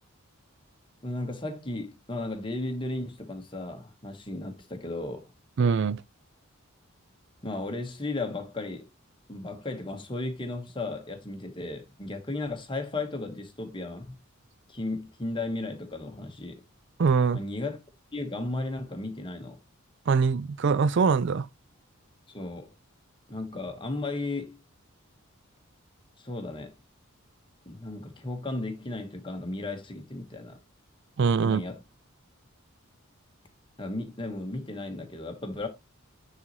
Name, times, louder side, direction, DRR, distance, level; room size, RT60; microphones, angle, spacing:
voice 1, 1.0-5.3 7.4-8.9 9.3-14.2 14.7-16.6 17.3-17.8 18.1-19.6 22.3-22.7 23.3-24.6 26.2-26.7 27.6-30.6 31.4-31.8 33.8-35.7, left 2 dB, 25° left, 1.4 m, -35 dB
voice 2, 5.6-6.0 17.0-17.4 20.1-21.5 31.2-31.6, right 5 dB, 55° right, 0.4 m, -23 dB
9.7 x 4.1 x 3.1 m
head